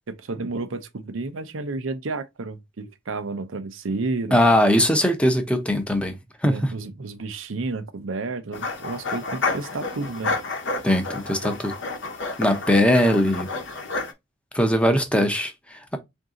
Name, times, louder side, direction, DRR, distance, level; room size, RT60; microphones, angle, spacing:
voice 1, 0.1-4.4 6.4-10.4, right 3 dB, 85° right, 0.6 m, -31 dB
voice 2, 4.3-6.2 6.4-6.7 10.8-11.7 12.4-13.5 14.5-16.0, equal, 5° left, 0.6 m, -20 dB
sound 1, 8.5-14.1, left 3 dB, 65° left, 0.8 m, -30 dB
3.8 x 2.7 x 3.6 m
head